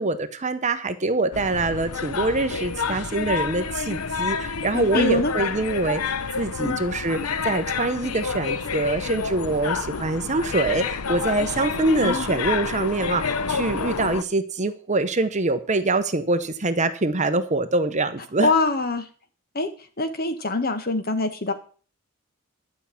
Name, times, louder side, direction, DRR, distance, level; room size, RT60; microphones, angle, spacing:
voice 1, 0.0-6.0 6.4-18.5, right 2 dB, 30° right, 10 dB, 1.0 m, -24 dB
sound 1, 1.3-14.2, left 5 dB, 85° left, 0.8 m, -29 dB
voice 2, 4.7-5.3 6.6-6.8 12.0-12.3 18.4-19.1 19.5-19.7 20.0-21.5, left 3 dB, 45° left, 9 dB, 1.5 m, -24 dB
12.0 x 5.8 x 8.5 m, 0.40 s
head